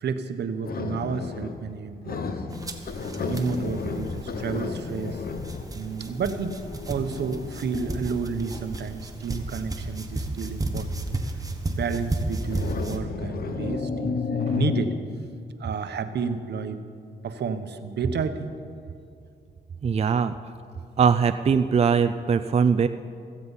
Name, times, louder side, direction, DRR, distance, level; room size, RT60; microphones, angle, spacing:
voice 1, 0.0-2.4 3.0-5.2 5.7-6.6 6.9-11.0 11.7-14.9 15.6-16.8 17.2-18.5, right 5 dB, 75° right, 9 dB, 1.0 m, -31 dB
sound 1, 0.6-1.8 2.0-9.0 9.9-10.2 12.4-15.0, left 5 dB, 55° left, 1.0 m, -32 dB
sound 2, 2.5-13.0, right 2 dB, 20° right, 1.3 m, -33 dB
voice 2, 19.8-20.3 21.0-22.9, right 6 dB, 35° right, 10 dB, 0.4 m, -21 dB
16.5 x 15.0 x 5.6 m, 2.4 s
wide cardioid pair, 125°, 18 cm